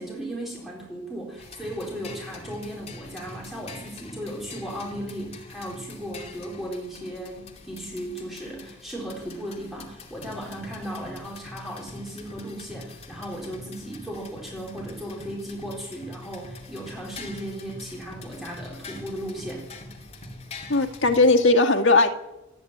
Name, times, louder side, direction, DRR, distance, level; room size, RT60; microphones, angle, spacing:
voice 1, 0.0-19.7, right 1 dB, ahead, -3 dB, 4.2 m, -36 dB
sound 1, 1.4-21.3, left 2 dB, 30° left, 2.7 m, -43 dB
voice 2, 20.7-22.1, left 2 dB, 65° left, 4 dB, 2.1 m, -18 dB
27.5 x 10.0 x 9.4 m, 0.99 s
head